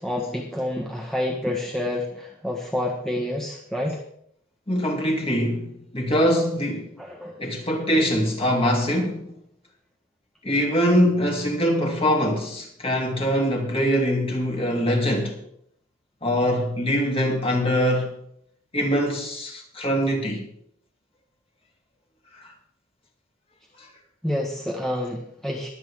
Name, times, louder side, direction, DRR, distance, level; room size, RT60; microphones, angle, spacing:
voice 1, 0.0-4.0 7.0-7.4 24.2-25.7, left 1 dB, ahead, 1.6 m, -28 dB
voice 2, 4.7-6.9 7.4-9.3 10.4-15.4 16.2-18.2 18.7-20.5, equal, 30° left, 3.1 m, -23 dB
21.5 x 8.5 x 3.7 m
head